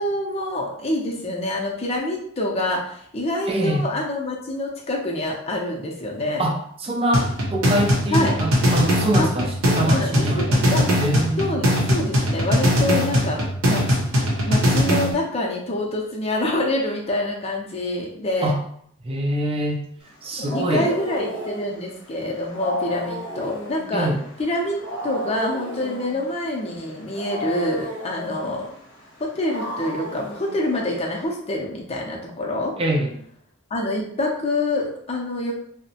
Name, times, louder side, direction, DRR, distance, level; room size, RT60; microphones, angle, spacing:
voice 1, 0.0-6.4 8.1-8.3 9.2-9.3 9.9-10.9 11.4-11.6 11.9-13.8 14.5-18.5 20.4-24.1 24.4-28.7 29.2-32.7 33.7-35.5, left 1 dB, 30° left, -1 dB, 0.5 m, -26 dB
voice 2, 3.5-4.0 6.4-10.5 10.7-11.8 18.4-18.6 19.0-19.8 20.2-20.9 23.9-24.2 32.8-33.1, right 1 dB, 25° right, 1 dB, 0.4 m, -24 dB
sound 1, 7.1-15.1, equal, 85° right, 0.7 m, -20 dB
Wild animals, 20.0-31.3, equal, 60° left, 0.8 m, -34 dB
2.7 x 2.0 x 2.7 m, 0.65 s
head